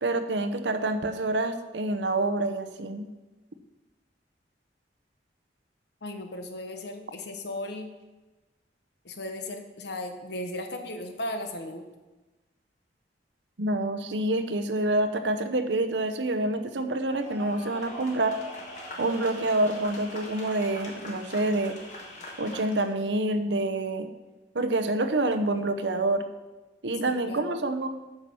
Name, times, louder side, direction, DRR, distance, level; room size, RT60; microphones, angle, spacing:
voice 1, 0.0-3.1 13.6-18.4 19.0-21.8 22.4-24.1 24.5-26.2 26.8-27.9, right 2 dB, 80° right, 9 dB, 0.9 m, -27 dB
voice 2, 6.0-7.9 9.0-11.8 27.0-27.6, left 1 dB, 65° left, 5 dB, 1.2 m, -36 dB
sound 1, 17.1-23.0, left 2 dB, 45° left, 2.3 m, -42 dB
8.8 x 5.9 x 6.9 m, 1.1 s
head